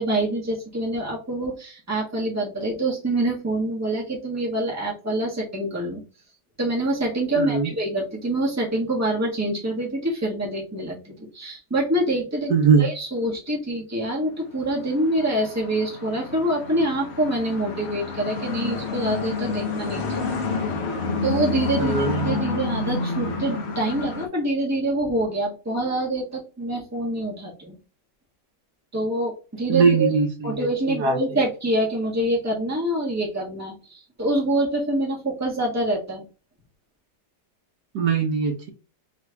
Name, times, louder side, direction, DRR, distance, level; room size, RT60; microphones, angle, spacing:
voice 1, 0.0-6.0 6.6-12.5 12.8-20.3 21.2-27.7 28.9-30.1 30.4-33.7 34.2-36.2, right 1 dB, 10° right, -3 dB, 1.2 m, -25 dB
voice 2, 7.4-7.7 12.5-12.8 21.8-22.4 29.7-31.2 37.9-38.7, right 5 dB, 70° right, 4 dB, 1.4 m, -21 dB
sound 1, 14.6-24.3, left 4 dB, 55° left, 0.8 m, -29 dB
4.4 x 4.1 x 2.3 m, 0.33 s
omnidirectional pair, 1.9 m